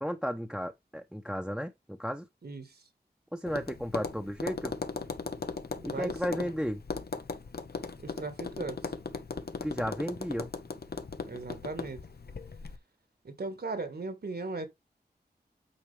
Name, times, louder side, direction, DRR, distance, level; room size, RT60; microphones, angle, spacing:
voice 1, 0.0-2.2 3.3-4.7 5.8-6.8 9.6-10.5, equal, 5° right, 0.9 m, -34 dB
voice 2, 2.4-2.8 5.8-6.5 8.0-8.9 11.3-12.1 13.2-14.7, right 3 dB, 70° right, 1.9 m, -38 dB
Tap, 3.5-12.8, left 4 dB, 70° left, 1.1 m, -38 dB
8.9 x 4.6 x 3.5 m
wide cardioid pair, 60°, 17 cm